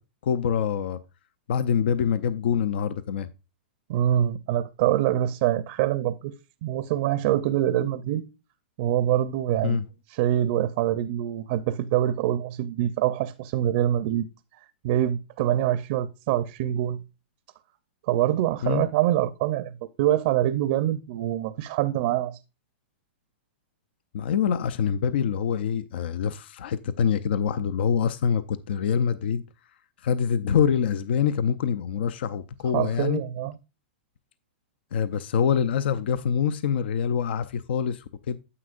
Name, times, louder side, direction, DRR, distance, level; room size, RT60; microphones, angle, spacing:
voice 1, 0.2-1.0 1.5-3.3 9.6-9.8 18.6-18.9 24.1-29.4 30.0-33.2 34.9-38.4, left 7 dB, 70° left, 0.5 m, -25 dB
voice 2, 3.9-6.3 6.6-8.2 8.8-9.8 10.1-14.3 14.8-17.0 18.1-22.4 32.7-33.6, right 12 dB, 50° right, 0.5 m, -25 dB
9.7 x 7.5 x 2.5 m
hypercardioid pair, 140°, 6 cm